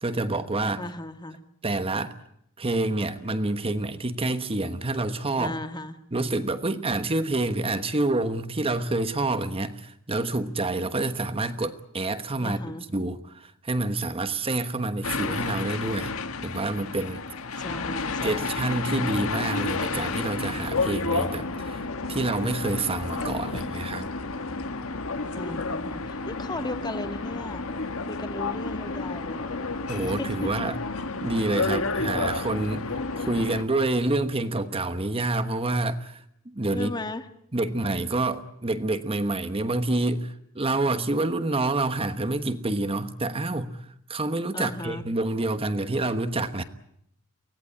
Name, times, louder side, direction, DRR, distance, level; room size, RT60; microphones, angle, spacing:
voice 1, 0.0-0.8 1.6-2.1 2.6-5.5 6.1-12.6 12.9-16.1 16.4-17.2 17.5-17.7 18.2-21.8 22.1-24.1 29.9-30.8 31.2-36.2 36.4-36.9 37.5-46.6, right 2 dB, 25° right, 1.2 m, -28 dB
voice 2, 0.8-1.4 5.4-5.9 12.4-12.8 17.6-18.6 25.3-27.7 28.1-29.7 30.2-30.5 36.7-37.2 44.5-45.0, left 2 dB, 20° left, 1.6 m, -36 dB
sound 1, 15.0-33.6, left 3 dB, 80° left, 1.6 m, -31 dB
24.0 x 17.5 x 9.8 m
head